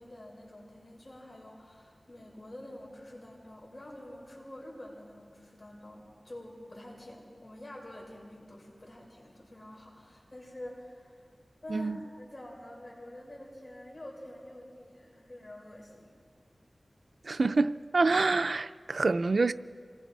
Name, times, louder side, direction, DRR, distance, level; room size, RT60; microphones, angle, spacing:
voice 1, 0.0-11.2 11.6-16.1, left 1 dB, 45° left, 6.2 m, -47 dB
voice 2, 17.3-19.5, right 3 dB, 75° right, 0.5 m, -26 dB
26.5 x 20.5 x 4.7 m
wide cardioid pair, 55°, 0 cm